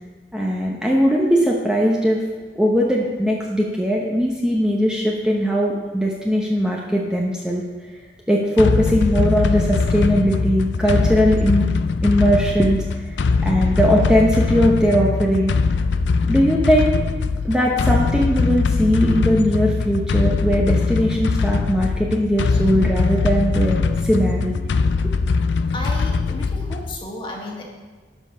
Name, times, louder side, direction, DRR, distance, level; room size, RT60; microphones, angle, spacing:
voice 1, 0.3-2.2 2.6-7.6 8.3-11.7 12.0-15.5 16.2-17.0 17.4-24.7, equal, 5° right, -2 dB, 0.8 m, -19 dB
sound 1, 8.6-27.0, left 4 dB, 80° left, 0.4 m, -21 dB
voice 2, 25.7-27.6, left 1 dB, 30° left, 0 dB, 1.6 m, -33 dB
12.5 x 5.3 x 5.5 m, 1.4 s
head